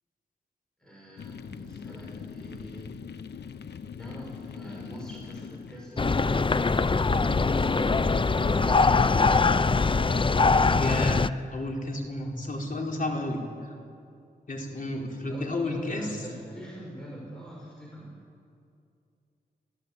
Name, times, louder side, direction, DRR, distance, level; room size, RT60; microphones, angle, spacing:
voice 1, 0.8-2.9 4.0-8.5 15.2-18.1, equal, 5° left, -3 dB, 6.1 m, -43 dB
sound 1, 1.2-6.2, left 6 dB, 90° left, 0.9 m, -42 dB
sound 2, 6.0-11.3, left 4 dB, 30° left, 0.6 m, -22 dB
voice 2, 10.8-13.4 14.5-16.2, left 1 dB, 55° left, 0 dB, 4.6 m, -31 dB
30.0 x 16.5 x 8.7 m, 2.4 s
cardioid pair, 75°, 17 cm